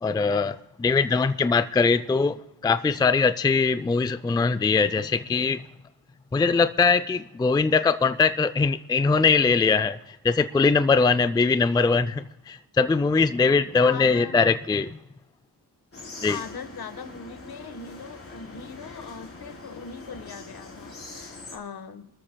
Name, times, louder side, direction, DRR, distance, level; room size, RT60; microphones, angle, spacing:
voice 1, 0.0-5.6 6.3-15.0 16.2-16.4, left 4 dB, 10° left, 0.4 m, -22 dB
voice 2, 13.8-14.4 16.2-22.1, left 6 dB, 70° left, 1.4 m, -39 dB
sound 1, 15.9-21.6, left 2 dB, 35° left, 3.5 m, -43 dB
27.0 x 13.5 x 2.3 m
wide cardioid pair, 115°, 39 cm